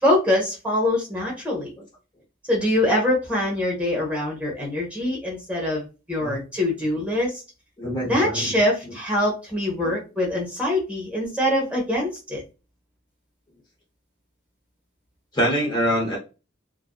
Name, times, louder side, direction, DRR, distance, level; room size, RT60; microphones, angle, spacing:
voice 1, 0.0-1.7 2.5-7.3 8.0-12.4, left 1 dB, 5° right, -3 dB, 0.9 m, -24 dB
voice 2, 7.8-8.5 15.3-16.2, equal, 20° left, -2 dB, 0.8 m, -24 dB
2.5 x 2.2 x 2.3 m, 0.30 s
head